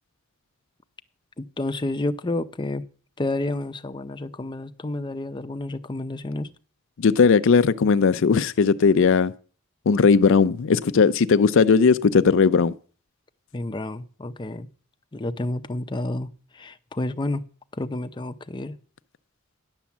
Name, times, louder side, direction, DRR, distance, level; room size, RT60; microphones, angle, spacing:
voice 1, 1.4-2.8 3.2-6.5 13.5-14.7 15.1-16.3 16.5-17.4 17.7-18.8, left 2 dB, 20° left, 0.6 m, -30 dB
voice 2, 7.0-9.3 9.9-12.7, left 5 dB, 65° left, 0.4 m, -18 dB
10.5 x 7.2 x 7.2 m
head